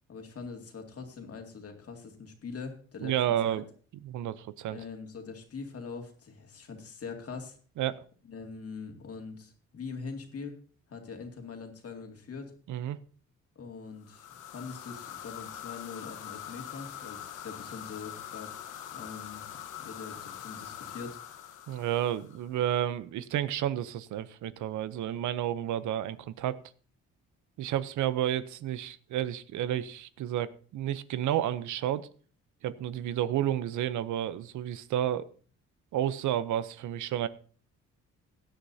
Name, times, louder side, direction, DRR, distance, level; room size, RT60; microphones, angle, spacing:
voice 1, 0.1-3.1 3.5-3.6 4.7-7.6 8.2-10.5 10.9-12.5 13.6-18.6 18.9-19.4 19.8-21.2, left 5 dB, 50° left, 4 dB, 2.3 m, -43 dB
voice 2, 3.0-3.6 4.0-4.8 7.8-8.0 12.7-13.0 21.7-26.6 27.6-32.1 32.6-35.3 35.9-37.3, right 11 dB, 75° right, 16 dB, 0.7 m, -31 dB
sound 1, 14.0-22.6, left 10 dB, 85° left, 1.2 m, -43 dB
16.5 x 9.9 x 2.8 m, 0.42 s
cardioid pair, 90°, 30 cm